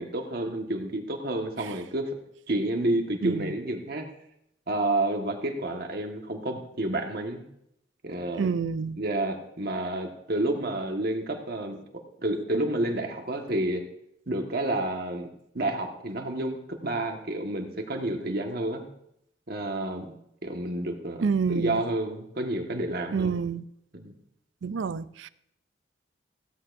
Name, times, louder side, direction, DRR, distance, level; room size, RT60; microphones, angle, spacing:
voice 1, 0.0-2.1 2.5-4.0 4.7-7.4 8.0-8.5 9.0-11.8 12.2-13.8 14.3-15.3 15.5-18.8 19.5-20.2 20.4-23.3 23.9-24.1, right 1 dB, 55° right, 1.5 m, -30 dB
voice 2, 3.2-3.5 8.4-9.0 21.2-21.8 23.1-23.6 24.6-25.3, right 5 dB, 85° right, 0.4 m, -28 dB
16.5 x 13.0 x 2.6 m
head